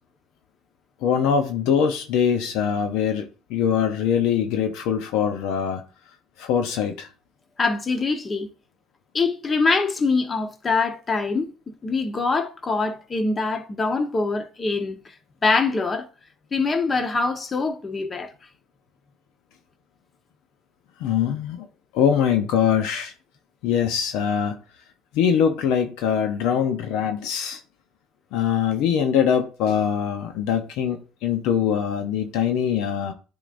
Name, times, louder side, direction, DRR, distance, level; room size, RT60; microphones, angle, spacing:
voice 1, 1.0-5.8 6.4-7.1 21.0-21.7 21.9-23.1 23.6-24.6 25.1-27.6 28.3-33.1, left 8 dB, 75° left, 0.7 m, -23 dB
voice 2, 7.6-8.5 9.1-11.5 11.8-15.0 15.4-16.1 16.5-18.3, left 3 dB, 30° left, 1.1 m, -24 dB
9.9 x 3.9 x 2.6 m
supercardioid pair, 75°, 0 cm